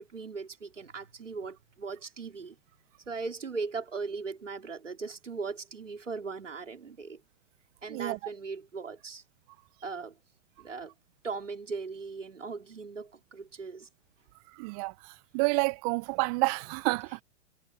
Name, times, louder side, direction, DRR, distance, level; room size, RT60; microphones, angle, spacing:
voice 1, 0.0-2.6 3.1-7.2 7.8-9.2 9.8-10.2 10.6-10.9 11.2-13.9, right 4 dB, 80° right, 3.7 m, -38 dB
voice 2, 14.6-14.9 15.3-17.2, right 30 dB, 30° right, 0.9 m, -29 dB
figure-of-eight pair, 115°, 36 cm